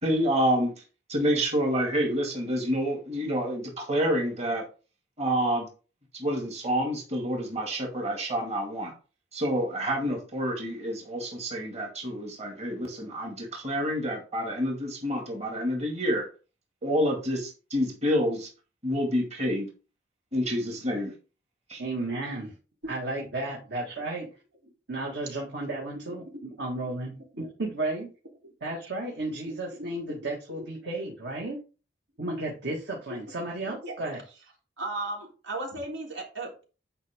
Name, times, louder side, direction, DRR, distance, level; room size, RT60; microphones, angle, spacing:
voice 1, 0.0-0.7 1.1-4.6 5.2-5.7 6.1-8.9 9.3-16.3 16.8-18.5 18.8-19.7 20.3-21.1 21.7-21.8, equal, 35° right, 0 dB, 2.4 m, -28 dB
voice 2, 21.8-22.5 22.9-24.3 24.9-28.1 28.6-31.6 32.2-34.2, right 2 dB, 65° right, -2 dB, 2.2 m, -33 dB
voice 3, 26.1-26.6 27.3-27.5 28.4-28.5 29.4-29.5 29.8-29.9 30.2-30.3 30.6-30.7 33.7-33.9 34.8-36.6, right 2 dB, 85° right, -1 dB, 3.6 m, -37 dB
10.5 x 5.2 x 3.7 m, 0.34 s
head